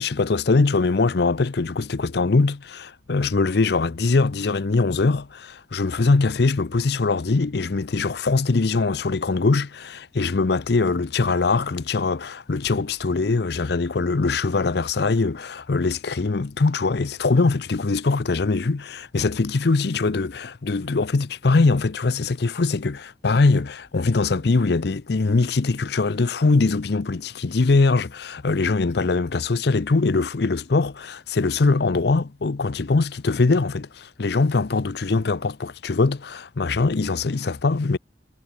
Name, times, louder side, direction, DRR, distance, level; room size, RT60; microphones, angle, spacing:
voice 1, 0.0-38.0, left 3 dB, 60° left, 0.6 m, -22 dB
head